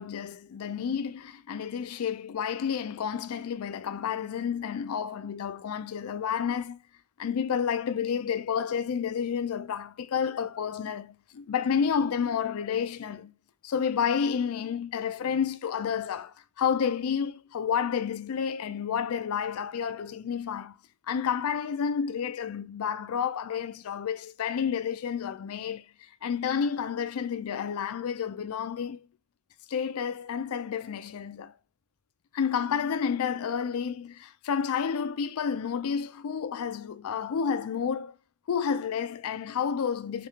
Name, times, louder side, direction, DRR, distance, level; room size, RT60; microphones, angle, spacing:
voice 1, 0.0-6.8 7.2-13.3 13.6-20.8 21.1-25.9 26.2-29.1 29.7-31.5 32.3-38.2 38.5-40.3, left 7 dB, 75° left, 0.4 m, -30 dB
3.5 x 2.7 x 2.8 m
head